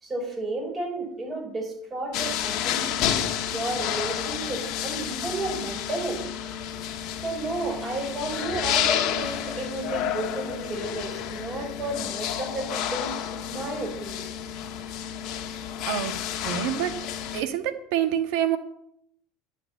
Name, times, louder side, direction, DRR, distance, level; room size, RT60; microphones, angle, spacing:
voice 1, 0.0-3.1 3.5-6.2 7.2-13.1 13.5-14.3, right 2 dB, 25° right, 0 dB, 5.9 m, -32 dB
sound 1, 2.1-17.4, left 9 dB, 60° left, 1.3 m, -30 dB
voice 2, 16.4-16.9 17.3-18.6, right 10 dB, 70° right, 9 dB, 1.5 m, -26 dB
11.0 x 5.9 x 9.0 m, 0.72 s
supercardioid pair, 95°, 0 cm